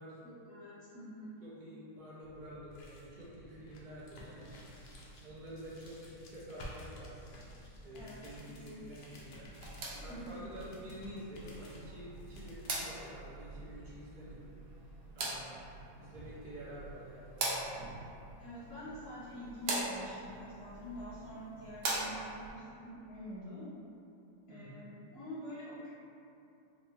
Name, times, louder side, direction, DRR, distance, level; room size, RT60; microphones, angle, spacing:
voice 1, 0.2-1.4 7.9-9.1 10.1-10.4 18.4-23.6 24.5-25.9, equal, 45° left, -13 dB, 1.5 m, -46 dB
voice 2, 1.4-4.9 5.2-7.3 7.8-9.5 10.0-14.5 15.1-15.7 16.0-17.8 24.5-24.9, equal, 55° right, -8 dB, 0.5 m, -49 dB
sound 1, 2.2-13.1, equal, 85° left, 0.4 m, -53 dB
sound 2, 9.5-22.5, right 2 dB, 80° right, 1.1 m, -42 dB
3.7 x 2.1 x 3.0 m, 2.8 s
omnidirectional pair, 1.5 m